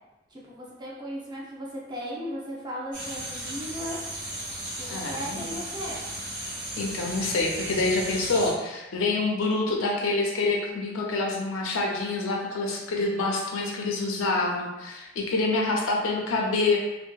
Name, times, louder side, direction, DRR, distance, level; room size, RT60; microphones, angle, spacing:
voice 1, 0.3-4.0 4.8-6.0, equal, 20° right, -5 dB, 0.5 m, -36 dB
sound 1, 2.9-8.5, right 1 dB, 60° right, 1.0 m, -35 dB
voice 2, 4.9-5.6 6.8-16.8, left 3 dB, 80° left, 0 dB, 0.5 m, -27 dB
2.7 x 2.2 x 2.3 m, 1.0 s
head